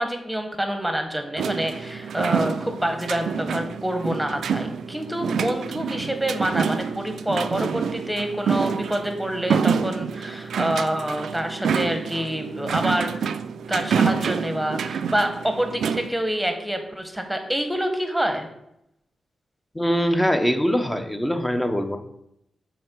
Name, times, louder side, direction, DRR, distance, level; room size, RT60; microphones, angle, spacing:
voice 1, 0.0-13.1 13.7-18.5, right 1 dB, 5° right, 5 dB, 1.3 m, -27 dB
sound 1, 1.4-16.1, right 6 dB, 80° right, 0.3 m, -27 dB
voice 2, 19.7-22.0, equal, 10° left, 7 dB, 0.8 m, -22 dB
6.2 x 4.6 x 4.6 m, 0.80 s
cardioid pair, 65°, 0 cm